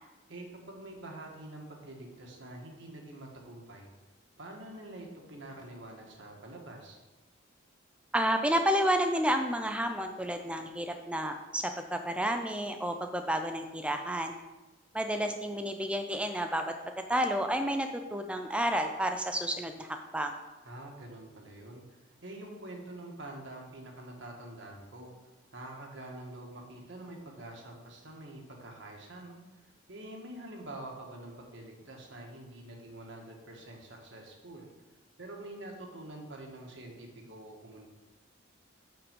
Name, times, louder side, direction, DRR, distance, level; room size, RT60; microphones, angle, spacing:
voice 1, 0.3-3.9 4.4-7.0 20.6-25.1 25.5-29.4 29.9-34.7 35.2-37.9, right 1 dB, 65° right, 1 dB, 1.5 m, -46 dB
voice 2, 8.1-14.4 14.9-16.7 17.1-20.3, equal, 5° right, 5 dB, 0.4 m, -30 dB
6.7 x 5.8 x 5.2 m, 1.1 s
head